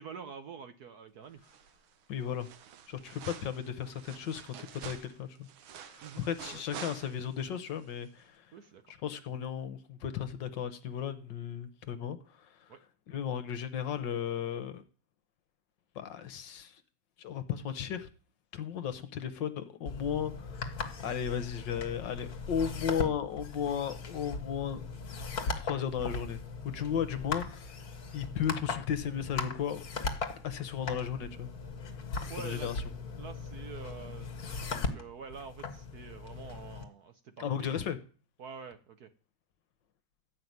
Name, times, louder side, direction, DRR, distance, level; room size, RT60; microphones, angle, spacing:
voice 1, 0.0-1.4 6.0-6.6 8.5-8.8 12.7-12.8 32.3-32.7 33.2-34.3 34.7-37.7 38.4-39.1, right 6 dB, 60° right, 1.1 m, -46 dB
sound 1, 1.4-7.5 7.8-7.9, right 9 dB, 75° right, 1.7 m, -48 dB
voice 2, 2.1-2.5 2.9-5.5 5.7-8.5 9.0-12.7 13.1-14.8 15.9-16.8 17.2-18.1 18.5-24.8 25.6-27.8 28.1-29.8 30.4-31.5 32.4-32.8 37.4-38.0, left 8 dB, 65° left, 1.5 m, -35 dB
sound 2, 19.9-36.8, left 4 dB, 45° left, 1.9 m, -39 dB
13.5 x 5.8 x 9.4 m
omnidirectional pair, 2.3 m